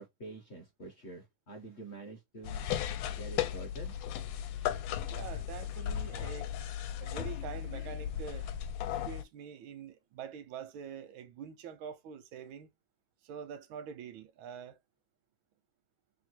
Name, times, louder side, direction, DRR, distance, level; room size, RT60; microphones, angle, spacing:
voice 1, 0.0-2.7 3.0-4.0, right 2 dB, 50° left, 0.8 m, -47 dB
sound 1, 2.4-9.2, left 10 dB, 75° left, 1.2 m, -36 dB
voice 2, 5.1-6.5 6.9-8.5 8.9-12.7 13.2-14.8, right 7 dB, 85° right, 1.4 m, -45 dB
3.5 x 2.4 x 4.4 m
omnidirectional pair, 2.1 m